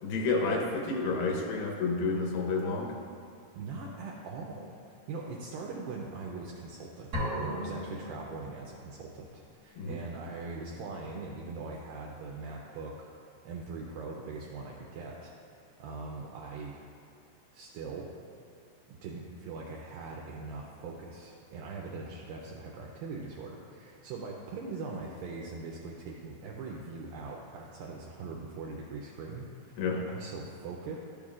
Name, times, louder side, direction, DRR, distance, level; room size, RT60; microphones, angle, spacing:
voice 1, 0.0-3.0 9.8-10.0 29.8-30.0, left 3 dB, 85° left, 0 dB, 2.9 m, -30 dB
voice 2, 3.6-7.1 7.4-13.1 13.5-16.8 17.5-18.1 18.9-31.0, right 3 dB, 80° right, -2 dB, 2.2 m, -41 dB
sound 1, 7.1-8.9, equal, 65° right, 1.0 m, -36 dB
12.0 x 7.1 x 2.4 m, 2.4 s
omnidirectional pair, 4.6 m